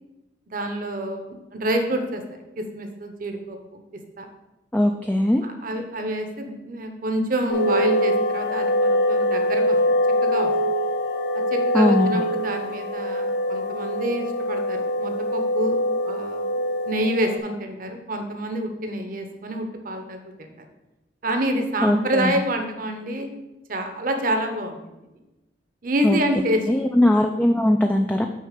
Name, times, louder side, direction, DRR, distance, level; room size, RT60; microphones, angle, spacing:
voice 1, 0.5-2.2 2.6-3.8 4.2-4.3 5.4-10.0 10.2-10.7 11.3-16.5 16.9-20.5 21.2-23.3 23.7-24.8 25.8-26.6, right 1 dB, 50° right, 5 dB, 0.8 m, -27 dB
voice 2, 4.7-5.4 11.7-12.2 21.8-22.4 26.0-26.2 26.7-28.3, left 1 dB, 10° left, 3 dB, 0.3 m, -20 dB
sound 1, 7.5-17.4, left 1 dB, 75° left, 1.1 m, -23 dB
6.4 x 4.4 x 6.6 m, 1.0 s
head